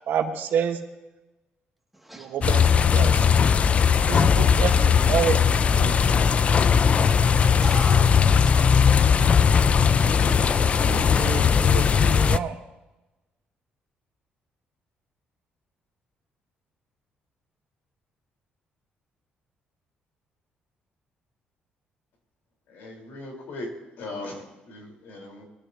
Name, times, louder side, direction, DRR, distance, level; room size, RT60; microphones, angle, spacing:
voice 1, 0.1-0.8 2.2-3.3 4.1-6.2 10.6-12.6, right 8 dB, 70° right, 1.4 m, -29 dB
voice 2, 1.9-2.7 7.0-10.1, right 1 dB, 5° right, 2.2 m, -40 dB
sound 1, 2.4-12.4, left 6 dB, 40° left, 0.4 m, -19 dB
voice 3, 22.7-23.7 24.0-25.4, left 2 dB, 80° left, 4.3 m, -38 dB
21.5 x 12.5 x 2.9 m
cardioid pair, 130°, 3 cm